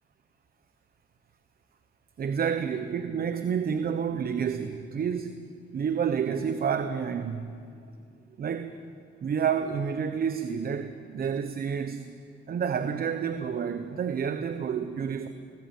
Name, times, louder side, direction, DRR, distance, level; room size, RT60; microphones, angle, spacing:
voice 1, 2.2-5.5 5.7-7.6 8.4-8.8 9.2-12.1 12.5-15.3, right 7 dB, 50° right, 9 dB, 1.1 m, -29 dB
20.5 x 20.0 x 7.9 m, 2.4 s
cardioid pair, 90°, 20 cm